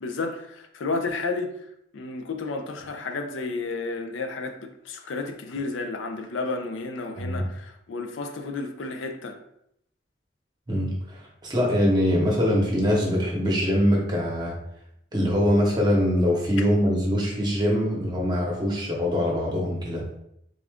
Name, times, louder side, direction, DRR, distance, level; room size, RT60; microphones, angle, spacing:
voice 1, 0.0-1.7 1.9-9.4, left 3 dB, 80° left, 0.5 m, -32 dB
voice 2, 10.7-14.5 15.1-20.0, equal, 20° right, 0.9 m, -23 dB
3.6 x 2.4 x 3.4 m
head